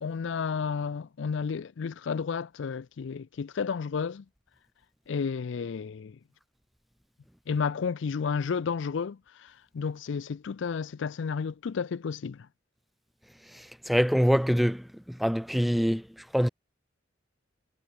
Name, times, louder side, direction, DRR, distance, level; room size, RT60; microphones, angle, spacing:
voice 1, 0.0-4.2 5.1-6.2 7.5-9.2 9.7-12.5, left 5 dB, 65° left, 0.4 m, -31 dB
voice 2, 13.9-14.8 15.2-16.0 16.3-16.5, equal, ahead, 0.4 m, -23 dB
head